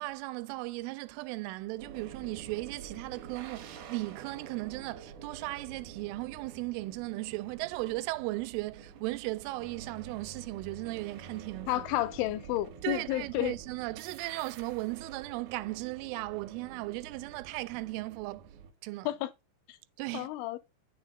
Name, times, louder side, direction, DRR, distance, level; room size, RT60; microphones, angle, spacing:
voice 1, 0.0-11.9 12.8-18.4 18.8-19.1 20.0-20.3, right 21 dB, 85° right, 3.1 m, -36 dB
sound 1, 1.8-18.7, right 6 dB, 65° right, 2.0 m, -48 dB
voice 2, 11.7-13.6 19.1-19.3 19.7-19.8 20.1-20.6, left 15 dB, 85° left, 3.1 m, -31 dB
9.6 x 7.0 x 3.7 m
omnidirectional pair, 5.6 m